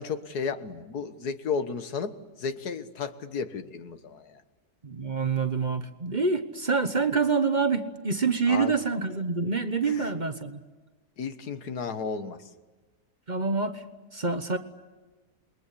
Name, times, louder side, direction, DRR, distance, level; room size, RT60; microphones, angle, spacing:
voice 1, 0.0-4.4 8.5-8.8 9.8-10.1 11.2-12.4, left 5 dB, 85° left, 9 dB, 1.9 m, -33 dB
voice 2, 4.8-10.6 13.3-13.8 14.1-14.6, right 4 dB, 30° right, 9 dB, 1.2 m, -26 dB
28.5 x 22.0 x 8.4 m, 1.3 s
omnidirectional pair, 1.6 m